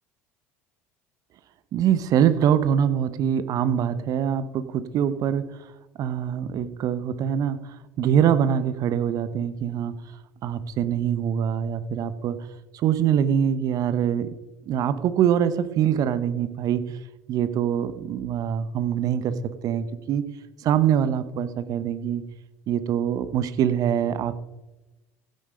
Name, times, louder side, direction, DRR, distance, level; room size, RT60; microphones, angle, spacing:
voice 1, 1.7-5.4 6.0-7.6 8.0-9.9 10.4-12.3 12.7-14.3 14.7-16.8 17.3-19.4 19.6-20.2 20.6-22.2 22.7-24.3, right 9 dB, 55° right, 13 dB, 1.0 m, -23 dB
16.0 x 7.8 x 5.1 m, 1.1 s
hypercardioid pair, 75°, 8 cm